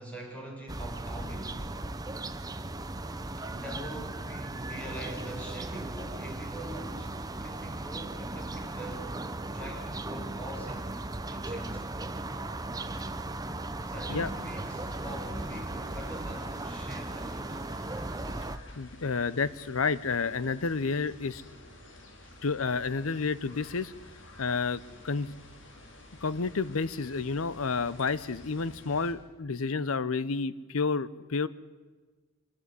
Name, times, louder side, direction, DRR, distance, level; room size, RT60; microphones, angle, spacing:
voice 1, 0.0-1.8 3.4-7.1 7.4-9.2 9.5-11.1 11.3-11.9 13.8-17.7 22.2-22.3, right 1 dB, 5° left, -1 dB, 5.4 m, -43 dB
sound 1, 0.7-18.6, right 2 dB, 20° right, 0.9 m, -37 dB
sound 2, 14.0-29.1, left 1 dB, 60° left, 3.0 m, -51 dB
voice 2, 18.7-21.4 22.4-23.9 24.4-25.3 26.2-31.5, left 4 dB, 90° left, 17 dB, 0.8 m, -30 dB
24.5 x 14.5 x 9.6 m, 1.3 s
head